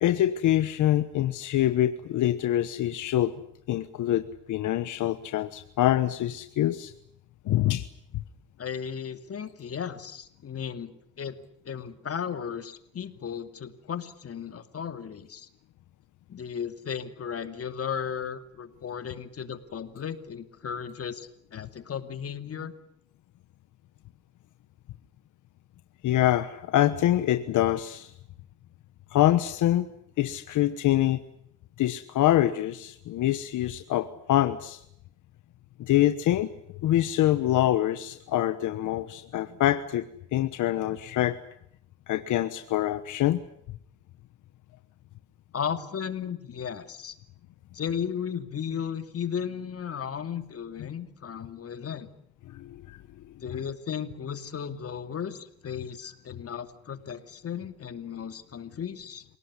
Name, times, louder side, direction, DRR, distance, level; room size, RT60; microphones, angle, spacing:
voice 1, 0.0-3.3 3.7-6.9 7.4-7.9 8.1-8.2 26.0-28.1 29.1-29.9 30.2-31.2 31.8-34.8 35.8-36.5 36.8-41.4 42.1-43.4 52.5-53.0 53.5-53.6, left 13 dB, 80° left, 11 dB, 1.2 m, -25 dB
voice 2, 8.6-10.9 11.2-11.4 11.6-15.5 16.3-22.7 45.5-47.1 47.7-52.1 53.4-59.2, left 7 dB, 50° left, 9 dB, 2.7 m, -35 dB
27.5 x 18.0 x 9.8 m, 0.75 s
cardioid pair, 90°, 30 cm